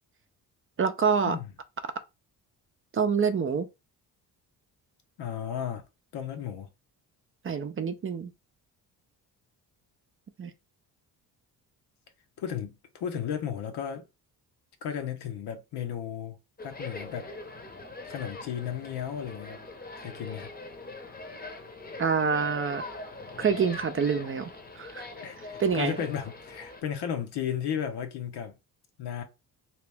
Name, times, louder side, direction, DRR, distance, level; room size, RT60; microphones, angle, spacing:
voice 1, 0.8-1.4 2.9-3.7 7.4-8.3 10.4-10.5 22.0-22.8 23.4-24.5 24.8-25.1 25.6-26.0, right 6 dB, 35° right, 0.5 m, -26 dB
voice 2, 5.2-5.8 6.1-6.7 12.4-14.0 14.8-17.3 18.0-19.6 20.0-20.5 25.1-28.5 29.0-29.2, left 8 dB, 75° left, 0.9 m, -34 dB
sound 1, 16.6-26.8, left 2 dB, 25° left, 0.8 m, -42 dB
2.9 x 2.8 x 3.4 m
cardioid pair, 85°, 40 cm